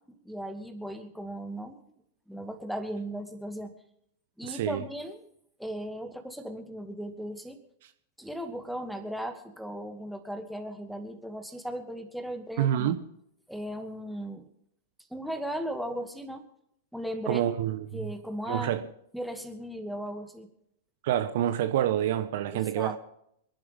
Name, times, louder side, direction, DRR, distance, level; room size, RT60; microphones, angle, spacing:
voice 1, 0.1-1.8 2.3-3.7 4.4-5.2 5.6-7.6 8.2-13.0 13.5-14.5 15.1-16.5 16.9-17.4 17.9-18.8 19.1-20.5 22.5-23.0, equal, ahead, 2.3 m, -37 dB
voice 2, 4.4-4.8 12.6-13.0 17.3-18.1 18.5-18.8 21.0-23.0, right 11 dB, 55° right, 1.1 m, -27 dB
26.5 x 11.0 x 3.6 m
figure-of-eight pair, 100°, 0 cm